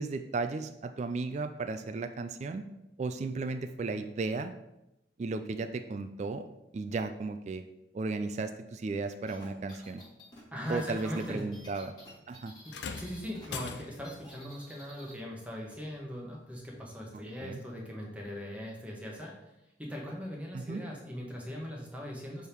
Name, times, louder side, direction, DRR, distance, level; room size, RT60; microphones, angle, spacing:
voice 1, 0.0-2.7 3.0-4.5 5.2-6.5 6.7-7.6 7.9-10.0 10.7-11.9 12.3-12.5 17.4-17.6 20.5-20.8, right 3 dB, 40° right, 8 dB, 0.3 m, -35 dB
sound 1, 9.3-13.5 13.8-15.2, equal, 25° left, 1.5 m, -52 dB
voice 2, 10.5-11.4 13.0-19.4 19.8-22.5, equal, 10° right, -2 dB, 1.1 m, -40 dB
sound 2, 12.7-14.2 15.7-15.9 16.7-16.8, left 5 dB, 75° left, 0.5 m, -41 dB
6.5 x 3.5 x 4.5 m, 0.89 s
head